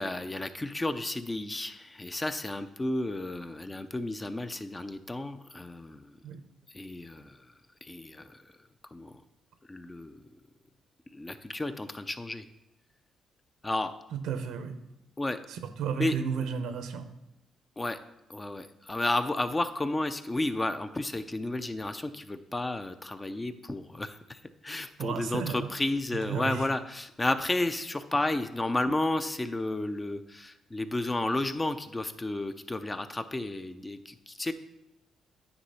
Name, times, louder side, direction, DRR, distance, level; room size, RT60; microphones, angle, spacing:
voice 1, 0.0-6.2 6.7-7.5 7.8-8.5 8.9-9.2 9.7-10.2 11.1-12.5 13.6-13.9 15.2-15.4 16.0-16.2 17.8-18.0 18.3-34.5, left 2 dB, 20° left, 10 dB, 0.5 m, -32 dB
voice 2, 14.1-14.8 15.5-17.1 25.0-25.7 26.2-26.7, right 7 dB, 85° right, 9 dB, 0.8 m, -33 dB
9.7 x 3.3 x 5.5 m, 0.89 s
cardioid pair, 90°, 0 cm